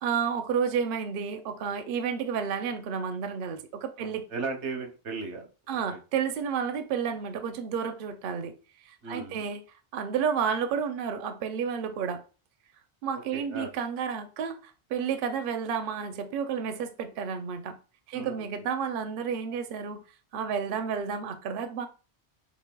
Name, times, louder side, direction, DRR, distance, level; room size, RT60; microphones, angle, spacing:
voice 1, 0.0-4.2 5.7-8.6 8.8-9.6 9.9-12.2 13.0-17.8 18.1-20.0 20.3-21.9, right 7 dB, 60° right, 0.6 m, -31 dB
voice 2, 4.0-6.0 9.0-9.4 13.1-13.7 18.1-18.3, right 4 dB, 80° right, 1.2 m, -37 dB
5.2 x 2.9 x 2.2 m
omnidirectional pair, 1.1 m